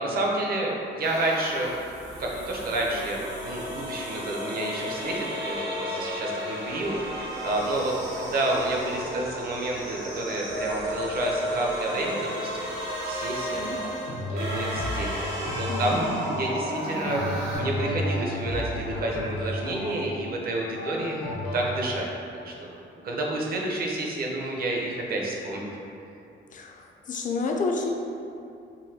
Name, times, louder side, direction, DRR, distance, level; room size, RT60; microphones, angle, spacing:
voice 1, 0.0-1.7 2.1-12.7 13.1-13.9 14.3-15.1 15.6-21.2 21.5-22.1 22.4-25.8, right 2 dB, 50° right, -2 dB, 0.6 m, -29 dB
sound 1, 1.0-17.6, equal, 85° right, 1.1 m, -33 dB
sound 2, 14.1-22.0, left 1 dB, 80° left, 0.8 m, -33 dB
voice 2, 15.7-16.2 26.5-27.9, left 3 dB, 40° left, 1 dB, 0.4 m, -30 dB
3.9 x 2.2 x 2.7 m, 2.6 s
cardioid pair, 90°, 20 cm